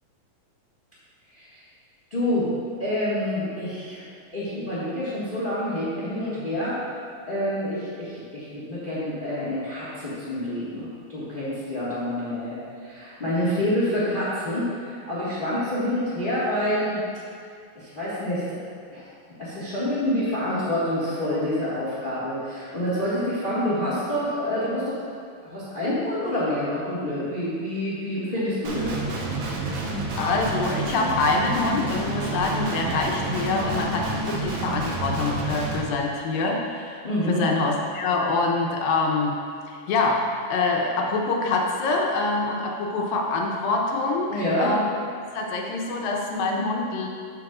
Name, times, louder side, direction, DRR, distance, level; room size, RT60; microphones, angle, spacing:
voice 1, 2.1-2.5 2.8-4.0 4.3-6.8 7.3-14.7 15.1-17.0 17.7-18.4 18.9-19.0 19.4-25.0 25.4-29.0 37.0-37.5 44.3-44.7, left 1 dB, 50° left, -10 dB, 0.6 m, -27 dB
Guitar, 28.6-35.8, right 2 dB, 65° right, 1.9 m, -29 dB
voice 2, 30.2-39.4 39.7-44.9 45.3-47.1, left 3 dB, 85° left, 0 dB, 2.6 m, -25 dB
14.0 x 6.1 x 2.5 m, 2.3 s
omnidirectional pair, 4.0 m